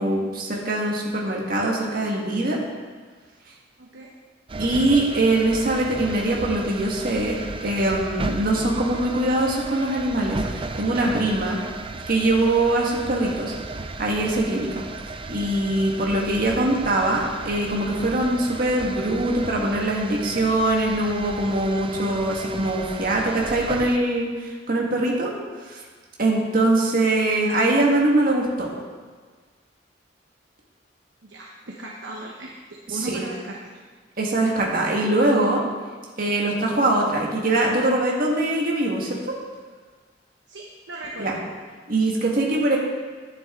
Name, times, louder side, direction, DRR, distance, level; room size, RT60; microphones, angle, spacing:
voice 1, 0.0-2.6 4.6-11.6 12.1-13.5 14.0-14.8 15.3-25.3 25.6-25.8 26.2-28.7 33.1-33.2 34.2-35.6 36.2-39.3 41.2-41.4 41.9-42.8, right 2 dB, 50° right, -2 dB, 1.7 m, -22 dB
voice 2, 3.8-4.1 31.2-32.6 32.9-33.8 40.5-41.4, right 2 dB, 75° right, -2 dB, 1.1 m, -37 dB
sound 1, 4.5-24.0, right 3 dB, 30° right, 0.4 m, -35 dB
10.5 x 9.8 x 3.8 m, 1.5 s
head